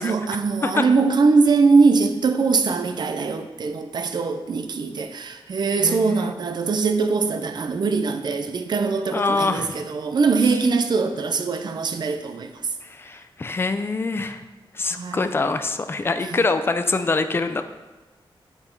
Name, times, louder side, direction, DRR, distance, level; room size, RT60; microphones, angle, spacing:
voice 1, 0.0-12.5 14.9-15.2 16.2-16.4, right 4 dB, 50° right, 0.5 m, -22 dB
voice 2, 5.8-6.3 9.1-9.8 12.8-14.4 14.7-17.6, left 3 dB, 25° left, 0.4 m, -24 dB
8.0 x 5.5 x 4.5 m
wide cardioid pair, 175°, 9 cm